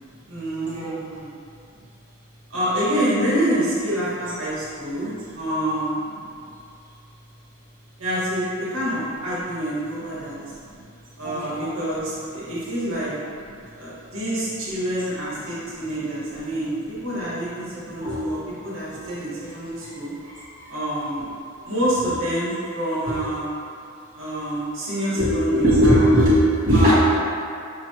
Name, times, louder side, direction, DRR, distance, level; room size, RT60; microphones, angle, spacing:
voice 1, 0.3-1.3 2.5-6.0 8.0-10.4 11.2-13.1 13.8-18.4 18.6-20.1 20.7-21.3 21.6-23.5 24.1-26.1 26.7-26.9, right 1 dB, 70° right, -10 dB, 1.4 m, -27 dB
voice 2, 11.2-11.6 17.7-18.2 18.9-19.0 23.1-23.2 25.1-26.9, equal, 40° right, -12 dB, 1.1 m, -19 dB
5.7 x 3.0 x 2.9 m, 2.6 s
head